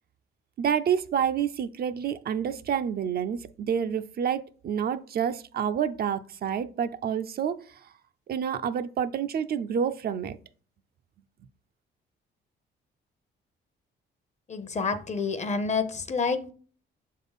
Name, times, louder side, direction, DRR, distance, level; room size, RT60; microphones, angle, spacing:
voice 1, 0.6-7.6 8.3-10.4, right 8 dB, 50° right, 0.4 m, -28 dB
voice 2, 14.5-16.5, left 4 dB, 35° left, 0.7 m, -28 dB
6.6 x 3.7 x 4.0 m
cardioid pair, 90°, 20 cm